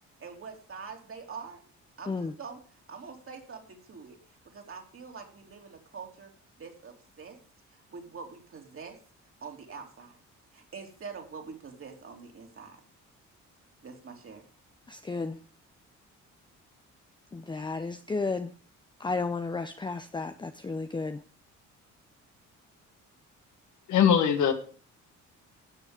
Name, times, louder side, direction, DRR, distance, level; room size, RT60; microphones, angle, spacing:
voice 1, 0.2-1.6 2.0-2.6 2.9-4.2 4.5-6.3 6.6-7.4 7.7-9.0 9.4-10.2 10.5-12.8 13.8-14.4, right 5 dB, 45° right, 2 dB, 3.2 m, -44 dB
voice 2, 14.9-15.4 17.3-18.5 19.0-21.2, left 3 dB, 15° left, 8 dB, 0.7 m, -33 dB
voice 3, 23.9-24.5, left 8 dB, 75° left, 6 dB, 2.0 m, -21 dB
13.0 x 7.2 x 5.1 m, 0.41 s
cardioid pair, 90°, 30 cm